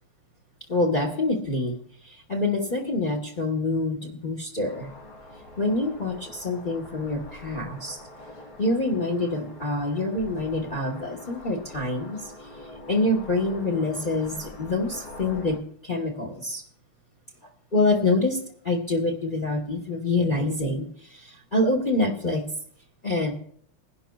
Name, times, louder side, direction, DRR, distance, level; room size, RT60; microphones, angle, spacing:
voice 1, 0.7-4.9 5.6-8.0 8.6-12.5 12.9-16.6 17.7-22.5 23.0-23.3, left 2 dB, 30° left, 1.2 m, -26 dB
sound 1, 4.6-15.6, left 1 dB, 80° left, 4.1 m, -44 dB
21.5 x 11.5 x 2.3 m
omnidirectional pair, 2.3 m